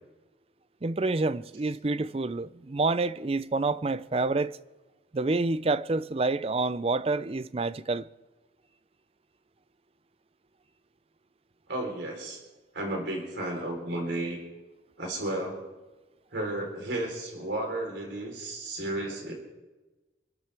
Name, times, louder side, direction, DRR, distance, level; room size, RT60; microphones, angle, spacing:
voice 1, 0.8-4.6 5.1-8.1, right 3 dB, 35° right, 0.5 m, -28 dB
voice 2, 11.7-12.4 12.7-14.4 15.0-15.6 16.3-19.3, right 1 dB, 85° right, 3.9 m, -33 dB
28.0 x 12.5 x 3.5 m
head